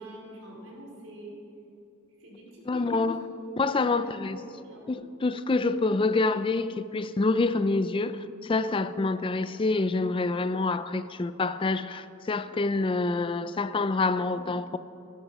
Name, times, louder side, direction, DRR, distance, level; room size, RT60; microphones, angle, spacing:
voice 1, 0.0-1.3 2.2-3.0 3.8-5.0, right 1 dB, 75° right, 4.4 m, -46 dB
voice 2, 2.7-3.2 3.6-4.4 4.9-14.8, left 3 dB, 25° left, 0.4 m, -27 dB
16.5 x 12.0 x 5.4 m
head